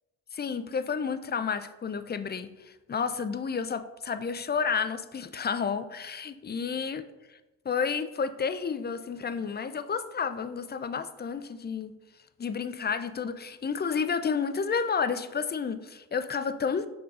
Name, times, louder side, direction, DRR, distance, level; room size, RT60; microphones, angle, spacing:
voice 1, 0.3-7.4 7.6-11.9 12.4-16.9, left 6 dB, 25° left, 11 dB, 0.5 m, -31 dB
6.5 x 5.6 x 2.6 m, 1.1 s
hypercardioid pair, 40°, 42 cm